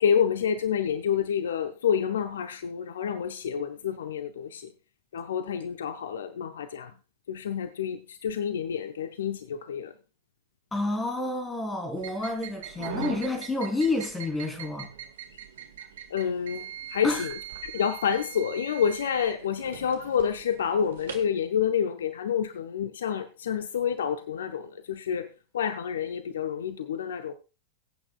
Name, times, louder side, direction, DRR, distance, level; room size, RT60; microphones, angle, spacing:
voice 1, 0.0-4.7 5.1-6.9 7.3-9.9 16.1-25.3 25.5-27.3, left 7 dB, 65° left, 0.7 m, -28 dB
voice 2, 10.7-14.9 17.0-17.3, left 2 dB, 15° left, 3.3 m, -29 dB
sound 1, 12.0-21.3, right 8 dB, 60° right, 1.8 m, -41 dB
22.0 x 8.5 x 2.3 m
figure-of-eight pair, 90°, 0 cm